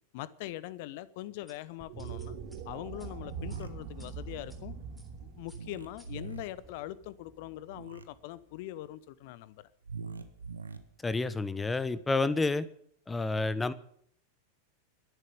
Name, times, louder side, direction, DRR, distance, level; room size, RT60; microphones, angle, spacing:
voice 1, 0.1-2.4 2.7-4.7 5.2-9.7, left 15 dB, 50° left, 0.9 m, -42 dB
sound 1, 1.5-4.6 5.0-5.2 5.5-6.7, right 1 dB, 5° right, 3.6 m, -59 dB
sound 2, 1.8-8.2, right 6 dB, 45° right, 2.6 m, -44 dB
sound 3, 3.3-3.7 5.5-6.4 7.7-8.0 9.8-10.8, right 5 dB, 75° right, 1.4 m, -42 dB
voice 2, 11.0-12.7 13.1-13.7, left 3 dB, 10° left, 1.0 m, -29 dB
12.5 x 11.0 x 9.4 m
figure-of-eight pair, 90°, 0 cm